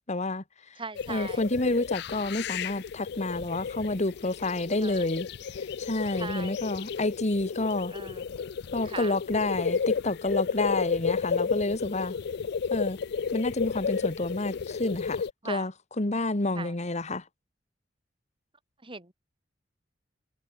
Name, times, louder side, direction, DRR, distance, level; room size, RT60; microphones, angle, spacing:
voice 1, 0.1-0.8 1.1-5.3 5.5-7.9 8.7-12.1 12.7-13.0 13.3-15.7 16.0-17.2, left 2 dB, 40° left, 1.5 m, -29 dB
voice 2, 0.8-1.4 4.8-5.1 6.1-6.6 7.6-8.2 8.9-9.1 15.4-15.7 16.5-16.7 18.8-19.1, right 4 dB, 30° right, 6.2 m, -40 dB
sound 1, 1.0-15.3, left 6 dB, 60° left, 0.4 m, -32 dB
head